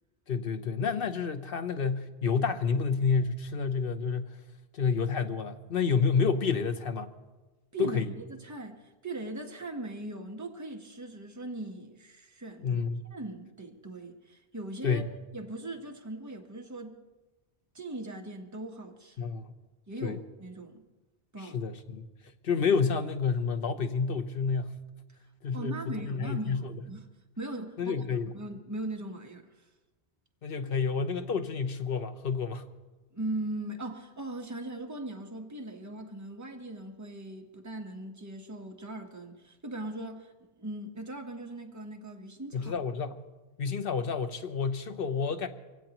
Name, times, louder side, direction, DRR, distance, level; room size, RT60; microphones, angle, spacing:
voice 1, 0.3-4.4 4.7-7.1 7.8-8.1 12.6-13.0 14.8-15.1 19.2-19.5 20.0-20.2 21.4-22.1 22.4-24.7 25.4-26.6 27.8-28.3 30.4-32.6 42.5-43.2 43.6-45.5, left 5 dB, 60° left, 1.1 m, -29 dB
voice 2, 7.7-12.8 13.1-15.0 15.3-17.0 17.7-19.3 19.9-20.8 21.3-21.6 25.5-27.0 27.4-28.0 28.3-29.5 33.1-42.7, right 2 dB, 15° right, 1.2 m, -39 dB
23.5 x 17.0 x 3.0 m
omnidirectional pair, 1.1 m